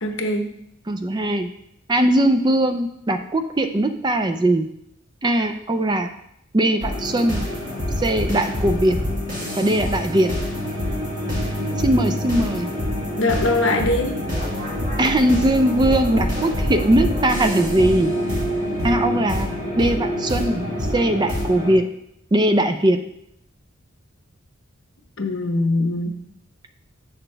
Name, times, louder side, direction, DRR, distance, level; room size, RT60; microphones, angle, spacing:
voice 1, 0.0-0.5 13.2-14.1 25.2-26.2, left 2 dB, 65° left, 4 dB, 1.0 m, -22 dB
voice 2, 0.9-1.5 1.9-4.7 5.2-6.1 6.5-7.4 8.0-9.0 9.5-10.3 11.8-12.7 15.0-18.1 18.8-19.5 19.8-21.8 22.3-23.0, right 1 dB, 20° right, 8 dB, 0.4 m, -20 dB
sound 1, 6.8-21.7, equal, 40° right, 1.9 m, -26 dB
7.7 x 6.1 x 3.4 m, 0.75 s
head